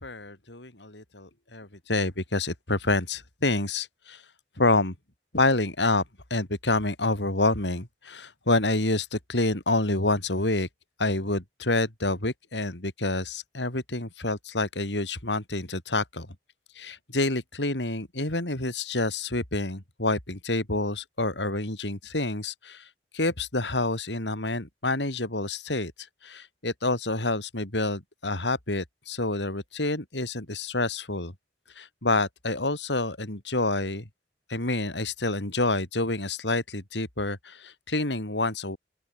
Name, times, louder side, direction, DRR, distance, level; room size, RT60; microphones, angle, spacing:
voice 1, 0.0-4.2 4.6-4.9 5.3-6.0 6.3-10.7 11.0-16.3 16.7-22.9 23.1-25.9 26.2-31.3 31.8-34.0 34.5-38.8, left 2 dB, 90° left, 4.9 m, -28 dB
open air
head